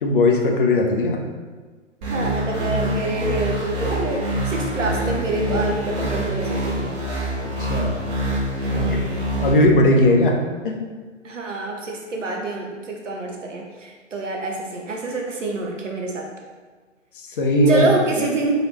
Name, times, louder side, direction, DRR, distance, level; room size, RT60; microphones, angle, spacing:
voice 1, 0.0-1.2 7.6-8.0 8.7-9.0 9.4-10.4 10.6-10.8 17.4-17.8, left 1 dB, 45° left, 2 dB, 0.6 m, -18 dB
sound 1, 2.0-9.5, right 1 dB, 35° right, 1.2 m, -25 dB
voice 2, 2.1-6.9 8.6-9.2 11.2-16.2 17.7-18.5, right 2 dB, 75° right, 0 dB, 0.9 m, -26 dB
3.9 x 3.2 x 3.0 m, 1.4 s
figure-of-eight pair, 125°, 37 cm